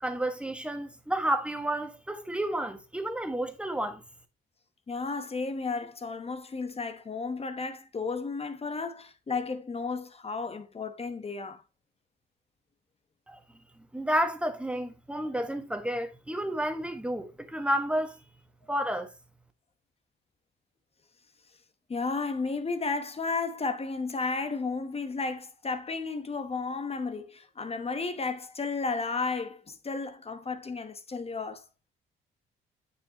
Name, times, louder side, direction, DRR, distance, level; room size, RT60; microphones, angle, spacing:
voice 1, 0.0-4.0 13.3-13.4 13.9-18.2 18.7-19.1, right 1 dB, 5° right, 1.5 m, -31 dB
voice 2, 4.9-11.6 21.9-31.6, left 4 dB, 30° left, 1.0 m, -33 dB
9.2 x 6.2 x 2.9 m
cardioid pair, 90°, 20 cm